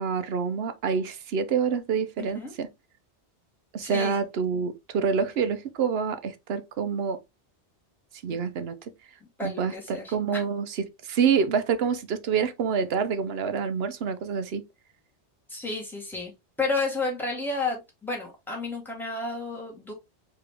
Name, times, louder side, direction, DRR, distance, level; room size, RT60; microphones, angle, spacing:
voice 1, 0.0-2.7 3.7-7.2 8.2-8.9 9.4-14.6, right 6 dB, 65° right, 0.8 m, -27 dB
voice 2, 2.2-2.5 3.8-4.2 8.3-8.4 9.2-10.4 15.5-16.3 16.6-19.9, left 3 dB, ahead, 1.9 m, -32 dB
4.7 x 3.1 x 3.3 m
omnidirectional pair, 1.2 m